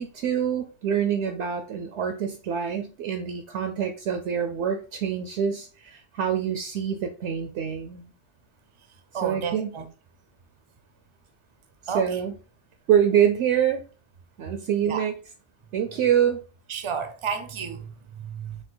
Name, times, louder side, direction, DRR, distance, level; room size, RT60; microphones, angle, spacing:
voice 1, 0.0-8.1 9.2-9.7 11.9-12.3 12.9-13.8 14.4-15.1 15.7-16.4, right 8 dB, 70° right, 0.9 m, -25 dB
voice 2, 9.1-9.9 11.9-12.2 14.8-15.1 16.7-18.6, right 6 dB, 35° right, 0.5 m, -32 dB
4.4 x 2.5 x 3.9 m
omnidirectional pair, 1.3 m